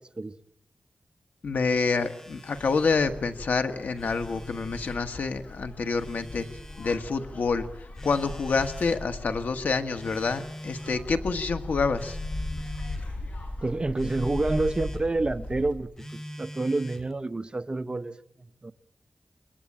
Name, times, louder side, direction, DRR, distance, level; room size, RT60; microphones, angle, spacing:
voice 1, 1.4-6.4 6.8-12.2, left 4 dB, 90° left, 8 dB, 1.6 m, -27 dB
Telephone, 2.0-3.1 3.8-5.0 6.0-7.0 8.0-9.1 10.0-11.1 12.0-13.1 14.0-15.1 16.0-17.1, equal, 15° left, 1.9 m, -43 dB
sound 1, 2.6-15.7, left 2 dB, 65° left, 7.7 m, -39 dB
voice 2, 13.6-18.2 18.6-18.7, right 2 dB, 35° right, 11 dB, 0.9 m, -28 dB
28.0 x 21.5 x 8.9 m, 0.82 s
wide cardioid pair, 75°, 3 cm